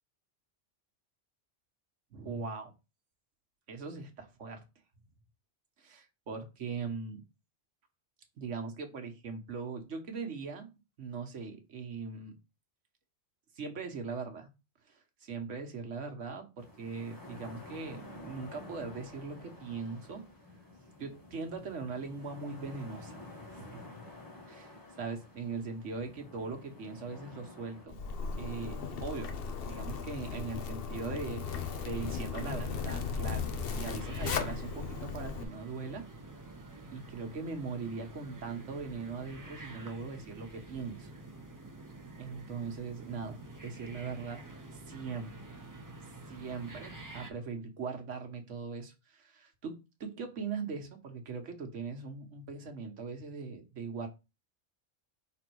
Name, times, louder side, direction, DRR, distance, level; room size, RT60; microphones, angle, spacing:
voice 1, 2.1-2.7 3.7-4.6 5.8-7.2 8.4-10.7 11.0-12.3 13.5-14.5 14.9-15.0 15.2-20.2 21.0-23.2 23.5-23.7 24.5-28.0 28.4-29.3 29.6-36.0 36.9-41.1 42.2-44.4 44.9-45.4 46.3-54.1, right 4 dB, 80° right, 5 dB, 1.4 m, -40 dB
sound 1, 16.6-27.9, left 2 dB, 15° left, 1.5 m, -50 dB
Zipper (clothing), 27.9-35.4, left 5 dB, 55° left, 0.8 m, -36 dB
sound 2, 31.4-47.3, right 2 dB, 20° right, 0.8 m, -48 dB
5.1 x 4.0 x 4.6 m, 0.28 s
omnidirectional pair, 1.2 m